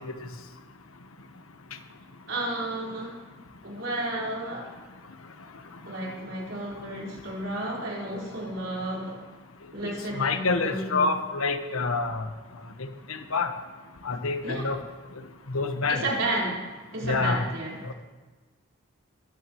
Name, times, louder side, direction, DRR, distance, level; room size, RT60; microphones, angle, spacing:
voice 1, 2.3-3.2 3.6-4.7 5.8-9.2 9.7-11.1 14.4-14.7 15.9-16.6 16.9-17.8, right 1 dB, 60° right, -4 dB, 4.6 m, -32 dB
voice 2, 9.8-12.3 12.8-13.5 14.0-14.8 15.5-16.0 17.0-17.4 17.8-17.9, left 4 dB, 85° left, 7 dB, 1.2 m, -27 dB
22.5 x 14.0 x 3.1 m, 1.3 s
head